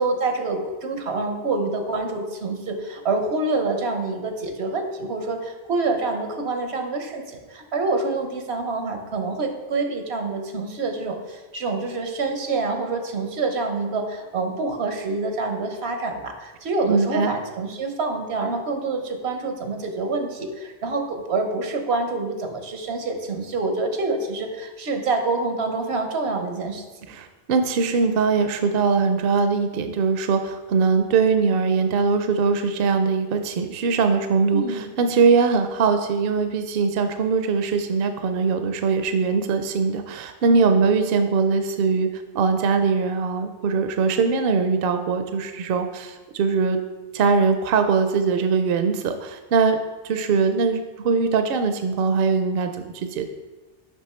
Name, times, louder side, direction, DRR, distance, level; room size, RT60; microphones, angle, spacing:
voice 1, 0.0-26.8 34.5-34.8 40.5-40.8, right 3 dB, 90° right, 5 dB, 1.2 m, -26 dB
voice 2, 16.9-17.4 27.1-46.8 47.1-49.8 50.0-53.3, right 5 dB, 70° right, 7 dB, 0.7 m, -21 dB
7.0 x 5.5 x 4.3 m, 1.2 s
omnidirectional pair, 1.0 m